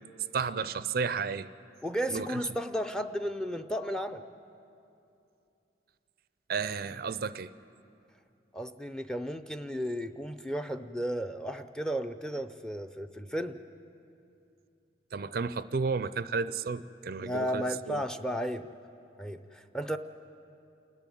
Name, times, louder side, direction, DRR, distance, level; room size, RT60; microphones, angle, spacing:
voice 1, 0.3-1.5 2.1-2.4 6.5-7.5 15.1-18.0, right 5 dB, 50° right, 14 dB, 0.4 m, -32 dB
voice 2, 1.8-4.2 8.5-13.6 17.2-18.7 19.2-20.0, equal, 5° left, 9 dB, 0.5 m, -34 dB
28.5 x 10.5 x 9.2 m, 2.7 s
head